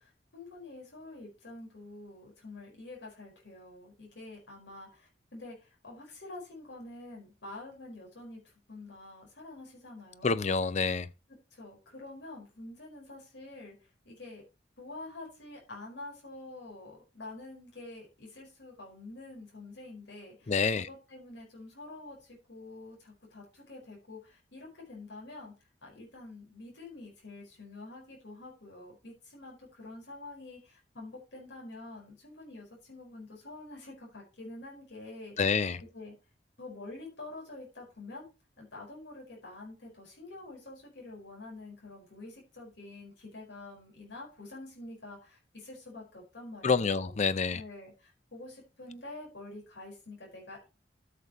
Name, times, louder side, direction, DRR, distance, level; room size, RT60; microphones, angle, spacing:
voice 1, 0.0-8.4 8.7-10.5 11.5-13.7 14.0-14.4 14.8-20.5 20.9-25.5 25.8-35.3 35.9-36.1 36.6-38.3 38.6-47.1 47.5-50.7, left 2 dB, 85° left, 4.6 m, -47 dB
voice 2, 10.2-11.1 20.5-20.9 35.4-35.8 46.6-47.6, left 5 dB, 40° left, 0.5 m, -27 dB
13.0 x 6.8 x 3.0 m
head